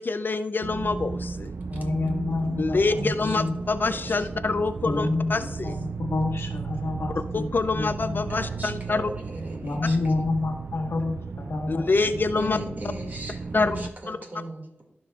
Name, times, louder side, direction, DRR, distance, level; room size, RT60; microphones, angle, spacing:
voice 1, 0.0-1.5 2.6-5.8 7.3-9.1 11.7-12.6 13.5-13.8 14.1-14.2, left 3 dB, 50° left, 10 dB, 0.4 m, -26 dB
sound 1, 0.6-13.9, right 4 dB, 60° right, 0.3 m, -35 dB
voice 2, 1.7-3.5 4.8-8.2 9.6-12.2, left 2 dB, 85° left, 2 dB, 1.2 m, -29 dB
voice 3, 3.0-3.4 3.6-4.3 4.9-5.6 8.3-10.0 12.3-14.6, right 1 dB, 45° right, 1 dB, 2.0 m, -38 dB
15.0 x 5.2 x 2.3 m, 0.86 s
wide cardioid pair, 65°, 4 cm